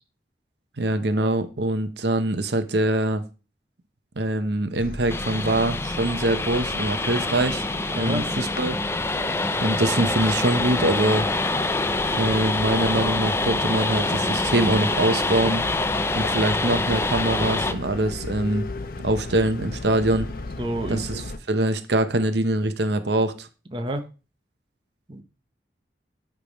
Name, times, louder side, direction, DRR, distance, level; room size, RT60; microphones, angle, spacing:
voice 1, 0.8-3.2 4.2-7.6 8.0-8.8 9.6-11.3 12.1-15.6 16.2-18.7 19.0-20.3 20.9-23.5, right 1 dB, 65° right, 0.8 m, -23 dB
sound 1, 4.8-21.4, left 2 dB, 55° left, 0.7 m, -37 dB
sound 2, 5.1-17.7, left 2 dB, 15° left, 0.4 m, -25 dB
voice 2, 7.9-8.3 20.6-21.1 23.7-24.0 25.1-25.2, right 1 dB, 30° right, 0.7 m, -29 dB
10.0 x 3.5 x 5.1 m
head